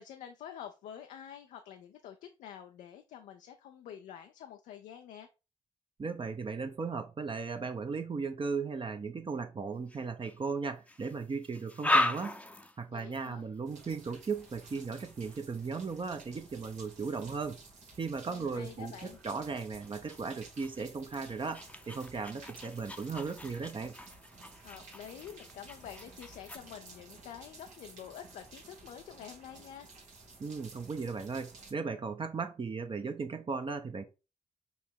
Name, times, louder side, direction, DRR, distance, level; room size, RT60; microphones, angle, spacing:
voice 1, 0.0-5.3 12.9-13.4 18.3-19.2 24.6-29.9, left 9 dB, 85° left, 0.4 m, -48 dB
voice 2, 6.0-12.4 12.8-17.6 18.0-23.9 30.4-34.0, right 5 dB, 45° right, 0.7 m, -37 dB
sound 1, 9.9-10.4 10.9-17.4 18.2-18.4 19.0-26.6, left 1 dB, 10° left, 0.6 m, -38 dB
sound 2, 13.7-31.7, right 3 dB, 85° right, 1.3 m, -54 dB
5.4 x 2.1 x 4.5 m
supercardioid pair, 45°, 12 cm